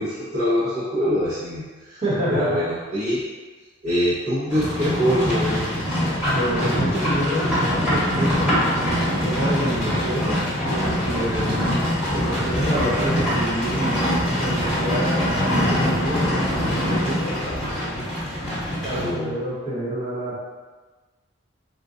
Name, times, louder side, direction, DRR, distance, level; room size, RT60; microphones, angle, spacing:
voice 1, 0.0-2.0 2.3-3.2 3.8-5.6 18.9-19.4, equal, 70° right, -13 dB, 1.1 m, -24 dB
voice 2, 2.0-2.6 6.3-10.3 10.6-11.6 12.1-14.0 14.3-17.3 18.8-20.5, equal, 35° right, -9 dB, 1.3 m, -28 dB
Livestock farm animals working animals, 4.5-19.1, equal, 5° right, 1.2 m, -23 dB
3.9 x 2.5 x 2.5 m, 1.3 s
head